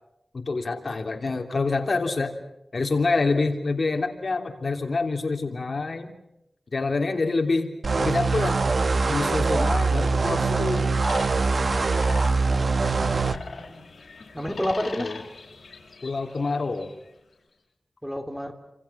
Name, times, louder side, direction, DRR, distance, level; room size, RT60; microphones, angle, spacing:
voice 1, 0.3-2.3 2.7-6.1 6.7-8.7 9.1-10.9 14.3-14.6 15.0-15.2 16.0-16.9, left 3 dB, 55° left, 3.3 m, -26 dB
sound 1, 7.8-13.4, right 4 dB, 60° right, 1.2 m, -23 dB
sound 2, 11.0-17.1, left 4 dB, 75° left, 6.1 m, -42 dB
voice 2, 12.9-13.8 14.3-15.1 18.0-18.5, equal, ahead, 3.1 m, -30 dB
29.0 x 27.5 x 5.9 m
wide cardioid pair, 105°, 0 cm